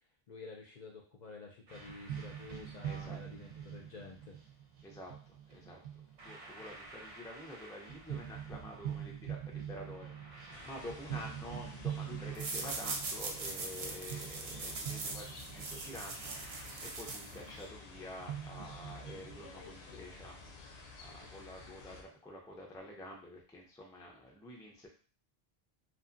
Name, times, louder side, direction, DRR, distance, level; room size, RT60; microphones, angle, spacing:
voice 1, 0.3-4.4, left 3 dB, 55° left, 0 dB, 0.5 m, -50 dB
sound 1, 1.7-19.4, right 9 dB, 50° right, 0.7 m, -45 dB
voice 2, 2.8-3.2 4.8-5.8 6.2-16.5 16.8-24.9, left 1 dB, 5° left, -1 dB, 0.3 m, -49 dB
sound 2, 10.5-22.0, left 3 dB, 85° left, 0.9 m, -52 dB
sound 3, 12.3-17.7, right 3 dB, 90° right, 0.9 m, -41 dB
2.8 x 2.4 x 2.5 m, 0.40 s
omnidirectional pair, 1.0 m